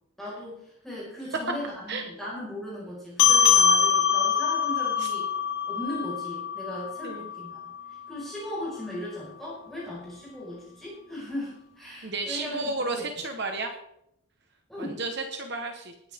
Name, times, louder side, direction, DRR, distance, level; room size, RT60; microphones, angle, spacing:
voice 1, 0.2-5.3 5.7-7.6 8.1-13.0 14.7-15.0, left 1 dB, ahead, -7 dB, 5.1 m, -37 dB
sound 1, 3.2-8.0, left 7 dB, 70° left, 3.5 m, -23 dB
voice 2, 12.0-13.7 14.8-16.1, right 3 dB, 50° right, 4 dB, 1.3 m, -33 dB
19.5 x 10.5 x 3.6 m, 0.78 s
head